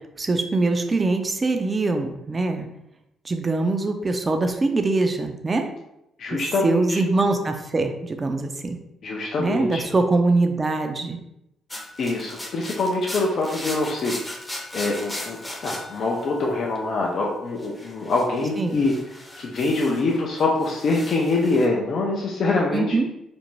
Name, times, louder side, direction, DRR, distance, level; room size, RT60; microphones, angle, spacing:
voice 1, 0.2-2.7 3.2-5.7 6.3-8.8 9.4-11.2 18.6-18.8 22.7-23.1, right 3 dB, 25° right, 6 dB, 0.4 m, -23 dB
voice 2, 6.2-7.0 9.0-9.9 12.0-14.1 14.7-15.4 15.6-18.9 19.4-23.0, left 3 dB, 60° left, -2 dB, 0.4 m, -24 dB
sound 1, 11.7-16.9 17.6-20.1 20.4-21.7, left 1 dB, 15° left, 0.6 m, -37 dB
2.5 x 2.1 x 3.0 m, 0.84 s
cardioid pair, 90°, 0 cm